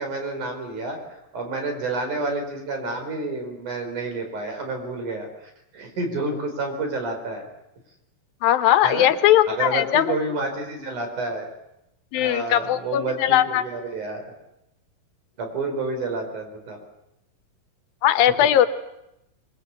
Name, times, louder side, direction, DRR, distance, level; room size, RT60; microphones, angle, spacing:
voice 1, 0.0-7.5 8.8-9.1 9.5-11.5 12.1-14.2 15.4-16.8, right 2 dB, 60° right, 5 dB, 6.1 m, -29 dB
voice 2, 8.4-10.1 12.1-13.6 18.0-18.7, left 12 dB, 85° left, 11 dB, 2.9 m, -19 dB
26.0 x 22.5 x 8.4 m, 0.85 s
omnidirectional pair, 4.0 m